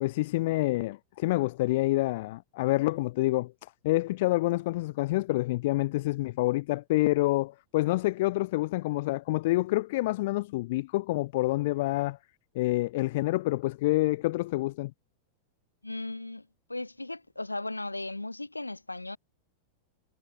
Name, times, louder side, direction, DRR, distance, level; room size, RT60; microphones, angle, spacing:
voice 1, 0.0-12.2 12.5-14.9, left 19 dB, 50° left, 0.8 m, -27 dB
voice 2, 15.8-19.2, left 2 dB, 85° left, 2.0 m, -37 dB
figure-of-eight pair, 90°, 0 cm